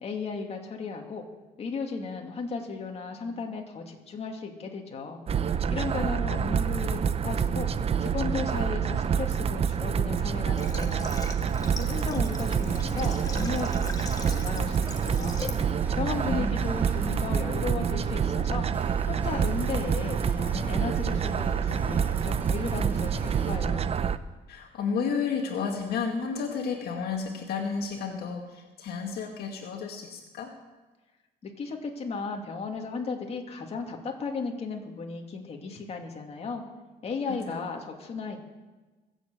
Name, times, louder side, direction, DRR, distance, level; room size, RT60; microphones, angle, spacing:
voice 1, 0.0-1.2 1.6-5.2 5.7-7.7 8.0-11.1 11.8-15.4 16.0-18.7 19.0-23.9 31.4-36.6 37.0-38.4, left 4 dB, 35° left, 1 dB, 2.6 m, -35 dB
sound 1, 5.3-24.2, right 7 dB, 35° right, 0.7 m, -27 dB
Water / Water tap faucet, 10.5-15.7, left 3 dB, 20° left, 1.8 m, -41 dB
sound 2, 12.5-23.6, right 1 dB, 10° right, 2.6 m, -44 dB
voice 2, 16.0-16.5 24.5-30.5 37.3-37.6, left 5 dB, 70° left, 2 dB, 2.0 m, -32 dB
23.0 x 7.8 x 7.8 m, 1.2 s
cardioid pair, 110°, 17 cm